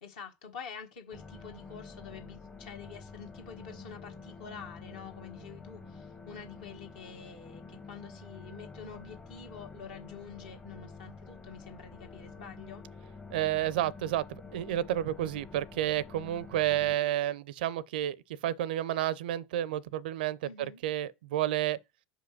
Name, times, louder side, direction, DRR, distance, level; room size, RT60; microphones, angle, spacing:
voice 1, 0.0-12.8 20.4-20.8, left 6 dB, 60° left, 1.5 m, -47 dB
sound 1, 1.1-17.0, left 4 dB, 15° left, 0.9 m, -48 dB
voice 2, 13.3-18.2 18.4-20.4 20.8-21.8, right 12 dB, 60° right, 0.5 m, -30 dB
5.4 x 4.9 x 5.8 m
figure-of-eight pair, 85°, 6 cm